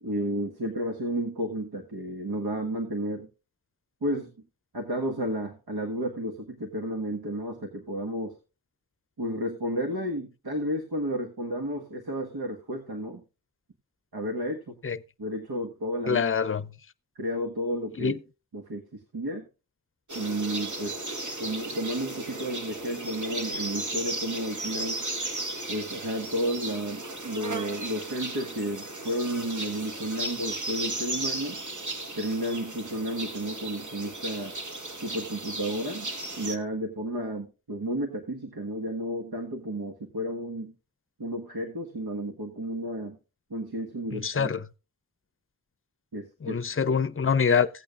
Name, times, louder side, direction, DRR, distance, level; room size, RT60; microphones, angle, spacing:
voice 1, 0.0-3.3 4.0-4.3 4.7-8.3 9.2-13.2 14.1-14.8 15.2-16.2 17.2-18.1 18.5-19.5 20.1-21.0 21.4-25.0 25.7-31.6 32.2-34.5 35.0-40.7 41.2-43.2 43.5-44.5 46.1-46.6 46.9-47.0, equal, 85° right, 1.6 m, -32 dB
voice 2, 16.1-16.6 18.0-18.2 44.1-44.6 46.4-47.7, left 6 dB, 35° left, 0.6 m, -25 dB
sound 1, 20.1-36.6, right 2 dB, 55° right, 1.5 m, -35 dB
16.0 x 8.8 x 2.5 m
wide cardioid pair, 60°, 37 cm